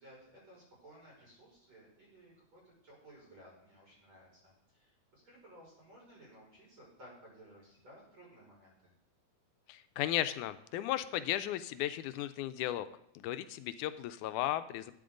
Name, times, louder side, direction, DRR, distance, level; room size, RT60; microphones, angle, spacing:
voice 1, 0.0-8.7, right 1 dB, 40° right, -5 dB, 6.5 m, -57 dB
voice 2, 9.7-12.9 13.1-14.9, left 13 dB, 90° left, 12 dB, 2.1 m, -35 dB
14.0 x 8.5 x 3.8 m, 0.74 s
omnidirectional pair, 3.5 m